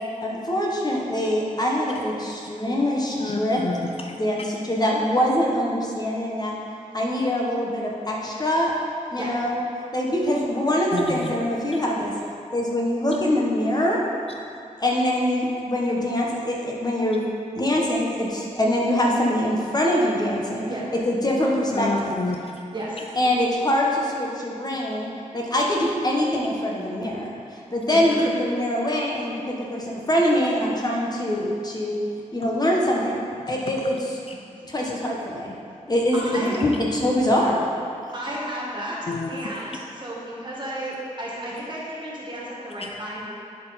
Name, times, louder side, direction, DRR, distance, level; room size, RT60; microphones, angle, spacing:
voice 1, 0.2-3.6 4.2-6.6 6.9-8.7 9.1-9.6 9.9-12.1 12.5-14.0 14.8-17.2 17.5-20.7 21.1-22.1 23.2-32.0 32.3-33.2 33.5-34.0 34.7-35.5 35.9-37.7, left 1 dB, 30° left, -3 dB, 1.2 m, -24 dB
voice 2, 3.1-4.2 10.9-11.3 21.7-22.7 31.3-31.5 33.5-33.6 34.3-34.4 39.1-39.5 42.8-43.0, left 3 dB, 45° left, 2 dB, 0.5 m, -30 dB
voice 3, 22.7-23.0 27.9-28.3 35.0-35.1 36.1-36.7 38.1-39.0 39.3-43.3, right 1 dB, 35° right, -6 dB, 1.9 m, -33 dB
11.0 x 4.4 x 4.2 m, 2.4 s
wide cardioid pair, 90°, 13 cm